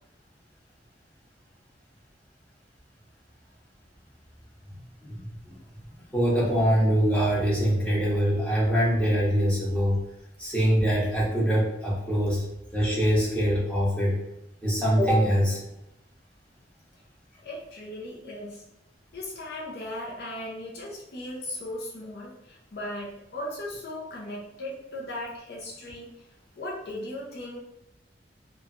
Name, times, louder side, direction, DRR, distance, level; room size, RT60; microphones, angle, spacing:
voice 1, 5.0-5.6 6.1-10.0 10.4-12.4 12.7-14.1 14.6-15.6, equal, 5° left, -7 dB, 0.8 m, -23 dB
voice 2, 17.4-18.6 19.1-26.1 26.6-27.6, left 1 dB, 65° left, -4 dB, 0.6 m, -37 dB
3.0 x 2.2 x 2.4 m, 0.86 s
head